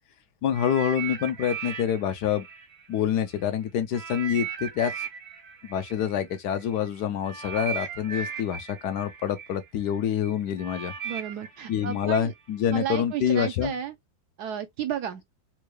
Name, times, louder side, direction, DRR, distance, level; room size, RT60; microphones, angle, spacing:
voice 1, 0.4-2.4 2.9-5.1 5.6-10.9 11.7-13.7, left 9 dB, 70° left, 1.1 m, -27 dB
sound 1, 0.5-3.4 3.9-12.9 13.6-13.8, right 7 dB, 50° right, 0.8 m, -38 dB
voice 2, 11.0-12.3 12.7-13.9 14.4-15.2, right 9 dB, 70° right, 1.0 m, -32 dB
4.4 x 2.2 x 3.1 m
omnidirectional pair, 2.0 m